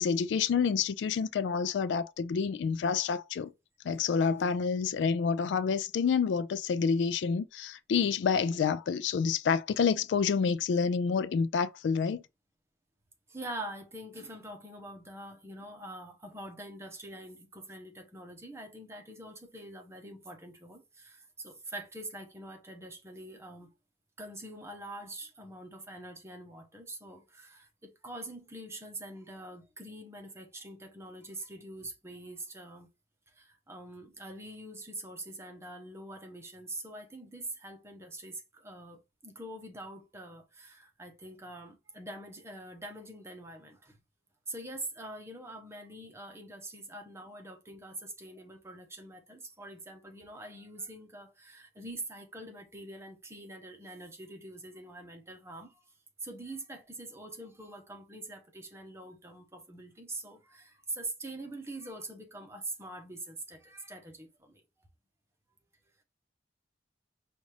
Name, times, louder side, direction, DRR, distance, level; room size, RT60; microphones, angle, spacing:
voice 1, 0.0-3.5 3.8-12.2, left 6 dB, 80° left, 0.3 m, -28 dB
voice 2, 13.3-23.7 24.2-32.9 33.3-44.0 44.5-55.8 56.2-64.9, right 2 dB, 15° right, 0.9 m, -44 dB
5.1 x 2.5 x 3.2 m
head